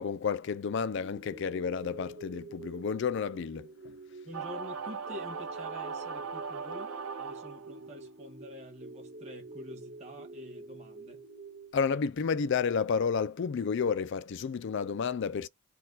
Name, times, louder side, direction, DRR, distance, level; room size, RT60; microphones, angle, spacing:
voice 1, 0.0-3.7 11.7-15.5, left 6 dB, 55° left, 0.3 m, -31 dB
sound 1, 1.0-11.7, right 2 dB, 50° right, 1.9 m, -48 dB
voice 2, 4.2-6.9 7.2-11.2, left 1 dB, 30° right, 1.6 m, -47 dB
sound 2, 4.3-7.8, right 6 dB, 70° right, 0.7 m, -39 dB
4.2 x 2.3 x 3.9 m
head